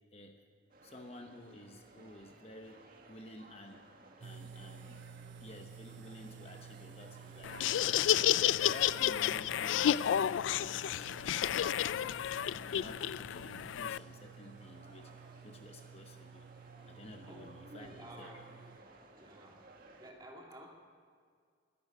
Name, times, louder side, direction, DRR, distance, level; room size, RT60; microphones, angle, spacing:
voice 1, 0.1-0.4 0.8-3.9 4.2-5.0 5.4-8.0 8.3-11.2 12.5-15.1 15.4-16.5 16.8-18.4, left 1 dB, 35° left, 4 dB, 1.0 m, -52 dB
sound 1, 0.7-20.1, right 2 dB, 50° right, 1.7 m, -57 dB
sound 2, 4.2-18.8, right 7 dB, 70° right, 0.5 m, -53 dB
Laughter, 7.4-14.0, left 10 dB, 90° left, 0.3 m, -31 dB
voice 2, 17.3-18.5 19.2-19.7 20.0-20.7, right 1 dB, 20° right, 0 dB, 2.5 m, -53 dB
13.5 x 11.0 x 9.8 m, 2.1 s
head